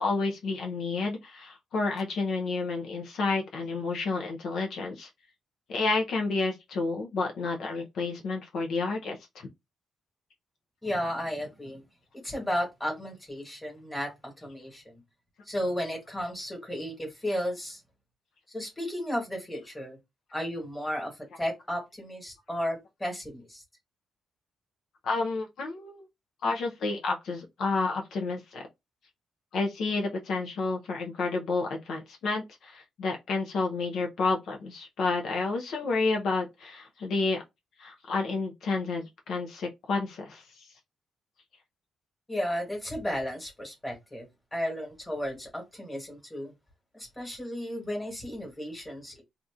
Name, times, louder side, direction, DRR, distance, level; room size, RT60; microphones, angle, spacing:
voice 1, 0.0-5.1 5.7-9.5 25.0-26.0 26.4-28.7 29.5-37.4 37.8-40.4, left 3 dB, 65° left, 0.7 m, -30 dB
voice 2, 10.8-11.8 12.2-15.0 15.4-17.8 18.5-20.0 20.3-23.6 42.3-46.5 46.9-49.2, equal, 10° left, 1.5 m, -34 dB
2.8 x 2.5 x 3.5 m
cardioid pair, 150°, 0 cm